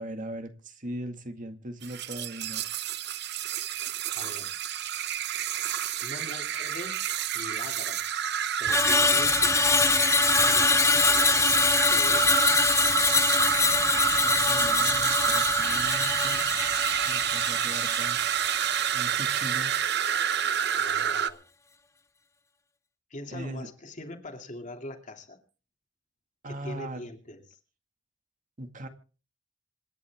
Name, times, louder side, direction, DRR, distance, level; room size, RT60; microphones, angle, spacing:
voice 1, 0.0-2.7 14.2-16.6 17.0-18.2 18.9-19.7 23.3-23.7 26.4-27.0 28.6-28.9, right 1 dB, 45° right, 6 dB, 2.1 m, -39 dB
sound 1, 1.8-21.3, right 9 dB, 60° right, 0.8 m, -28 dB
voice 2, 4.1-4.6 6.0-7.0 7.3-8.0 8.6-9.7 10.5-11.6 11.9-12.4 20.8-21.4 23.1-25.4 26.5-27.6, left 1 dB, 40° left, 4 dB, 2.7 m, -42 dB
Screech, 8.7-19.0 19.4-19.6, left 4 dB, 15° left, 0.7 m, -24 dB
26.5 x 11.0 x 3.6 m, 0.37 s
head